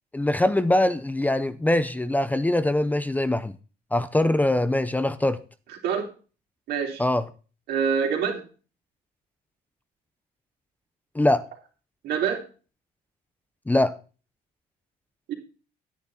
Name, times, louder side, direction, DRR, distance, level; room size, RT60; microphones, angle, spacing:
voice 1, 0.1-3.5 3.9-5.4 7.0-7.2 11.1-11.4 13.7-13.9, left 1 dB, 10° left, 0.6 m, -22 dB
voice 2, 6.7-7.0 7.7-8.4 12.0-12.4 15.3-15.4, right 7 dB, 75° right, 3.4 m, -25 dB
10.0 x 10.0 x 4.0 m
cardioid pair, 110°, 17 cm